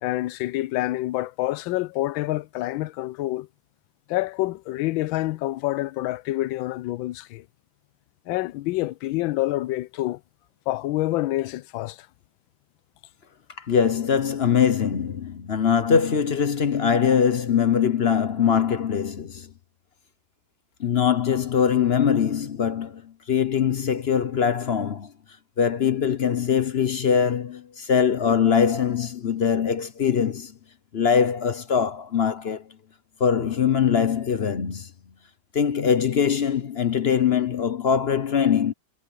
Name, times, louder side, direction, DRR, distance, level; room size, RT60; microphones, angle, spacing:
voice 1, 0.0-3.5 4.1-7.4 8.3-10.2 10.7-12.0, left 17 dB, 85° left, 1.4 m, -27 dB
voice 2, 13.6-19.5 20.8-25.1 25.6-30.5 30.9-32.7 33.2-34.9 35.5-38.7, left 7 dB, 45° left, 0.8 m, -22 dB
omnidirectional pair, 2.1 m